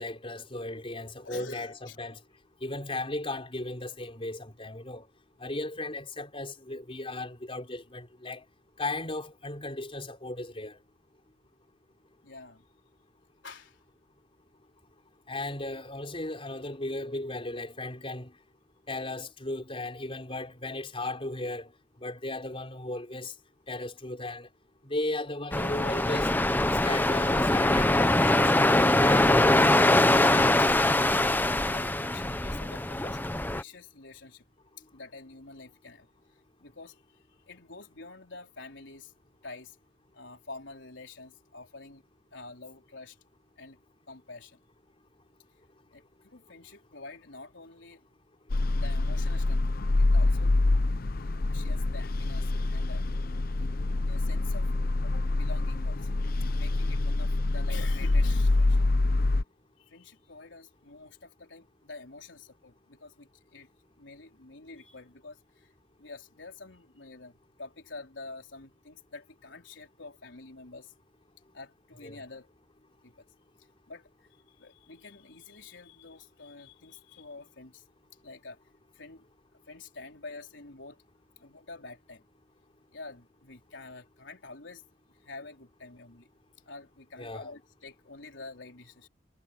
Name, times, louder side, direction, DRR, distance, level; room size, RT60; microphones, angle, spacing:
voice 1, 0.0-1.7 2.0-2.2 2.6-5.1 5.4-8.4 8.8-10.8 15.3-18.3 18.9-21.7 22.0-23.3 23.7-24.5 24.8-26.3 26.8-29.7 30.1-30.6 64.9-65.0 72.0-72.2 87.2-87.5, left 2 dB, 30° left, 4.7 m, -36 dB
voice 2, 1.2-2.0 12.2-12.6 13.4-13.8 31.6-33.2 33.5-34.4 34.9-39.1 39.4-39.8 40.1-42.0 42.3-43.2 43.6-43.8 44.1-44.6 45.9-48.0 48.7-49.6 50.0-50.6 51.5-53.1 54.1-54.7 55.0-56.2 56.5-58.9 59.8-63.7 64.0-65.7 66.0-70.9 71.5-72.5 73.0-73.3 73.9-77.8 78.2-78.6 78.9-79.3 79.7-81.0 81.4-82.2 82.9-84.8 85.2-86.3 86.7-89.1, left 3 dB, 80° left, 4.1 m, -47 dB
sound 1, 25.5-33.6, left 1 dB, 10° left, 0.9 m, -23 dB
sound 2, 48.5-59.4, left 2 dB, 55° left, 0.7 m, -26 dB
head